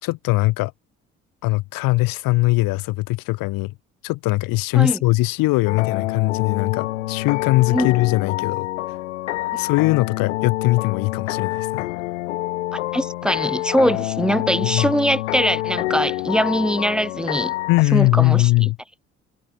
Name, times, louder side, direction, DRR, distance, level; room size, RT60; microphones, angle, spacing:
voice 1, 0.0-0.7 1.4-3.7 4.0-9.0 9.6-11.9 14.6-14.9 17.7-18.8, left 21 dB, 65° left, 1.8 m, -20 dB
sound 1, 5.7-17.8, left 17 dB, 80° left, 0.6 m, -27 dB
voice 2, 12.7-17.5 17.9-18.7, equal, ahead, 4.4 m, -22 dB
figure-of-eight pair, 50°, 36 cm